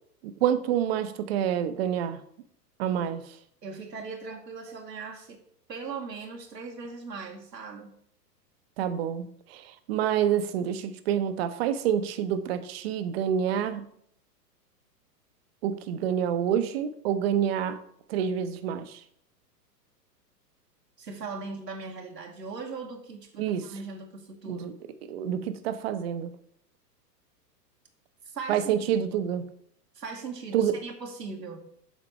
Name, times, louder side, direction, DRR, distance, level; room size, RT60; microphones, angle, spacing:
voice 1, 0.2-2.2 2.8-3.4 8.8-13.8 15.6-17.8 18.1-19.0 23.4-23.6 24.5-24.7 25.1-26.3 28.5-29.4 30.5-30.8, right 9 dB, 40° right, 11 dB, 0.7 m, -27 dB
voice 2, 3.6-5.4 5.7-7.9 21.0-24.7 28.2-29.3 29.9-31.6, right 4 dB, 85° right, 2 dB, 1.1 m, -39 dB
7.2 x 4.2 x 4.4 m, 0.68 s
figure-of-eight pair, 100°, 49 cm